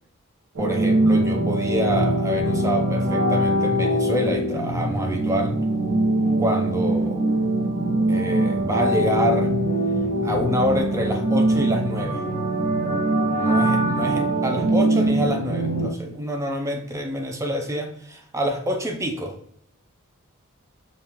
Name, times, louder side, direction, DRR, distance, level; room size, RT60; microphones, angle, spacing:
voice 1, 0.6-5.6 6.4-7.2 8.1-9.5 10.2-12.2 13.4-19.4, equal, 15° right, 4 dB, 0.5 m, -27 dB
sound 1, 0.6-15.9, right 1 dB, 80° right, 1.0 m, -22 dB
5.1 x 2.4 x 2.9 m, 0.70 s
head